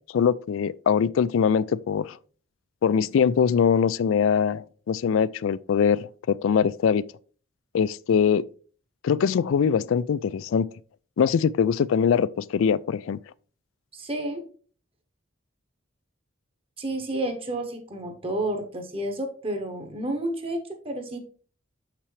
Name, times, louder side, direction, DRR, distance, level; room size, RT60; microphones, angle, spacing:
voice 1, 0.1-2.2 2.8-7.0 7.7-8.4 9.0-10.7 11.2-13.2, left 7 dB, 75° left, 0.3 m, -22 dB
voice 2, 13.9-14.4 16.8-21.2, right 1 dB, 25° right, 0.9 m, -30 dB
6.8 x 5.9 x 3.2 m
head